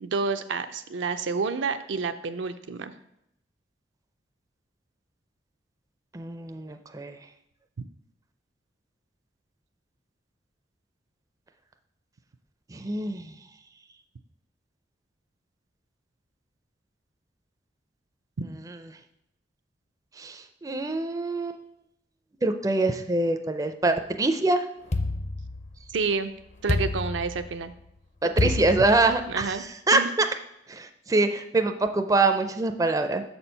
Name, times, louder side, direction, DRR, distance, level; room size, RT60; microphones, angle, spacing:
voice 1, 0.0-2.9 25.9-26.3 26.6-27.7 28.4-28.5 29.3-29.6 29.9-30.1, right 4 dB, 75° right, 9 dB, 0.5 m, -29 dB
voice 2, 6.1-7.2 12.7-13.3 18.7-18.8 20.2-21.6 22.4-24.7 28.4-30.3 30.7-33.2, right 2 dB, 20° right, 7 dB, 0.4 m, -25 dB
sound 1, 24.9-26.0 26.7-27.7 28.4-29.5, left 2 dB, 35° left, 0.5 m, -28 dB
6.7 x 4.4 x 5.5 m, 0.79 s
head